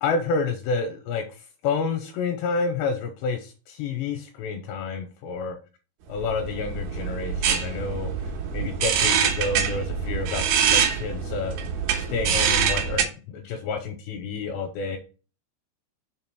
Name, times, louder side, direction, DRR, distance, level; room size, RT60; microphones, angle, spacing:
voice 1, 0.0-1.2 1.6-5.6 6.1-8.1 8.5-11.6 12.1-15.0, left 4 dB, 85° left, 6 dB, 2.6 m, -29 dB
sound 1, 6.2-13.0, right 7 dB, 70° right, 2.4 m, -25 dB
6.7 x 3.7 x 4.4 m, 0.35 s
omnidirectional pair, 5.5 m